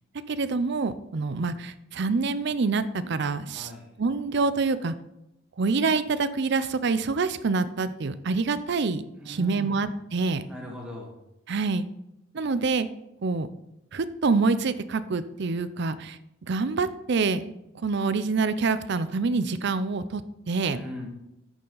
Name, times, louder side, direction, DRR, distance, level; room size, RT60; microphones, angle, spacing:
voice 1, 0.3-3.7 4.0-4.9 5.6-10.4 11.5-11.9 12.3-12.9 13.2-13.5 13.9-17.5 17.8-20.2 20.5-20.8, right 4 dB, 55° right, 14 dB, 0.5 m, -26 dB
voice 2, 3.5-3.9 9.2-9.8 10.5-11.2 20.7-21.1, left 1 dB, 5° right, -2 dB, 1.7 m, -39 dB
8.4 x 6.9 x 3.9 m, 0.86 s
head